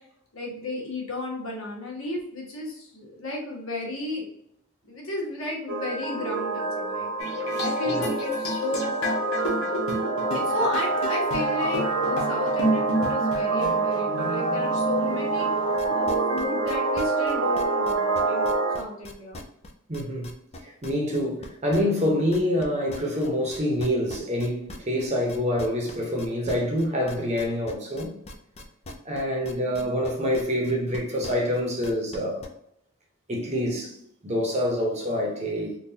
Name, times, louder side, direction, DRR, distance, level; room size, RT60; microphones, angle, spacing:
voice 1, 0.3-4.2 4.8-7.1 7.6-8.9 10.3-15.5 15.9-18.5 18.7-19.4, left 2 dB, 70° left, 1.2 m, -33 dB
sound 1, 5.7-18.8, right 3 dB, 85° right, 1.0 m, -26 dB
sound 2, 7.2-16.7, equal, 85° left, 0.9 m, -32 dB
voice 2, 7.5-8.0 19.9-20.3 20.6-28.1 29.0-32.4 33.3-33.9 34.2-35.8, equal, 30° right, 0.8 m, -26 dB
sound 3, 15.8-22.6 22.9-32.5, left 1 dB, 30° left, 0.5 m, -41 dB
3.7 x 2.4 x 2.8 m
head